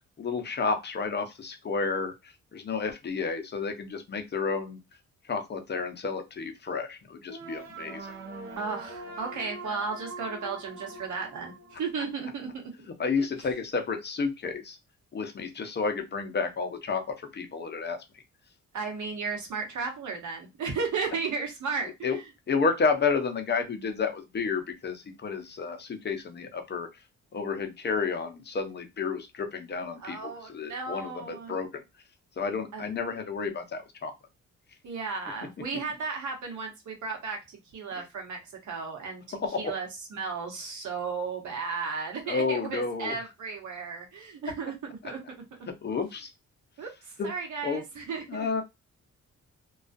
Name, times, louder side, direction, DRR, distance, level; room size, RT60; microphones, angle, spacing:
voice 1, 0.2-4.8 5.3-8.1 13.0-14.8 15.1-18.2 22.0-22.2 22.5-26.9 27.3-31.8 32.4-34.1 38.0-38.1 39.4-39.7 42.3-43.1 45.8-46.3 47.2-47.3 47.6-47.8 48.3-48.6, left 5 dB, 35° left, 6 dB, 0.6 m, -31 dB
sound 1, 7.3-12.3, right 2 dB, 45° right, 0.7 m, -42 dB
voice 2, 8.6-11.5 11.8-12.6 13.2-13.3 18.7-22.3 30.0-31.6 32.7-32.9 34.8-37.4 37.7-39.2 39.6-44.7 45.0-45.2 46.8-48.2, right 5 dB, 75° right, 2 dB, 1.0 m, -34 dB
2.3 x 2.3 x 2.5 m, 0.22 s
cardioid pair, 110°, 30 cm